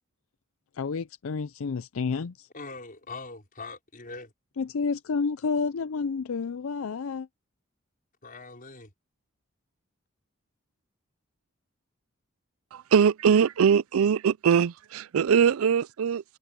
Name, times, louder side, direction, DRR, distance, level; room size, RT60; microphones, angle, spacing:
voice 1, 0.7-2.5 4.6-7.3, left 5 dB, 75° left, 0.5 m, -30 dB
voice 2, 2.5-4.3 8.2-8.9, left 3 dB, 45° left, 5.4 m, -42 dB
voice 3, 12.9-16.2, right 7 dB, 90° right, 0.4 m, -22 dB
head